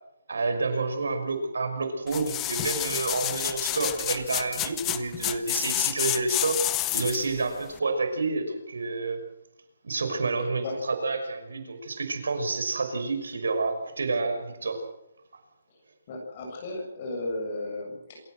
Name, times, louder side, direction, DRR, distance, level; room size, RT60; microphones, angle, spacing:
voice 1, 0.3-6.6 6.9-9.2 9.8-14.8, right 3 dB, 90° right, 6 dB, 5.9 m, -29 dB
sound 1, 2.1-7.3 7.8-7.9, left 15 dB, 10° left, 0.7 m, -29 dB
voice 2, 16.1-18.2, left 2 dB, 25° left, 1 dB, 7.3 m, -34 dB
27.0 x 15.0 x 7.9 m, 0.83 s
hypercardioid pair, 175°, 0 cm